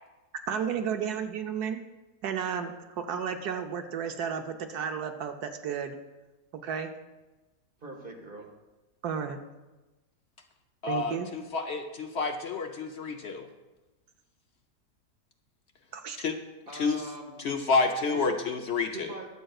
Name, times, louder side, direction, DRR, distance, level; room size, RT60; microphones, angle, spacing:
voice 1, 0.5-1.8 2.2-6.0 6.5-6.9 9.0-9.4 10.9-11.3 15.9-16.2, right 7 dB, 70° right, 6 dB, 1.2 m, -33 dB
voice 2, 7.8-8.5 16.7-17.4 18.1-18.3 18.9-19.3, right 2 dB, 35° right, 1 dB, 1.7 m, -41 dB
voice 3, 10.8-13.5 16.2-16.4 16.7-17.0 17.4-19.1, left 4 dB, 60° left, 4 dB, 0.7 m, -29 dB
21.5 x 7.6 x 2.4 m, 1.1 s
omnidirectional pair, 1.8 m